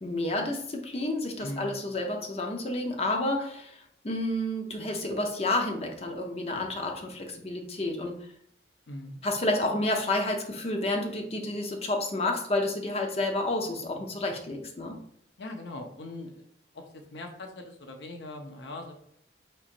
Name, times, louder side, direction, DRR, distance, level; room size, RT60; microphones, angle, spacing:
voice 1, 0.0-8.2 9.2-15.0, left 2 dB, 35° left, 3 dB, 0.7 m, -30 dB
voice 2, 1.4-1.7 8.9-9.2 15.4-16.5 16.7-18.9, left 1 dB, 80° left, 3 dB, 0.8 m, -40 dB
4.5 x 4.2 x 2.5 m, 0.69 s
head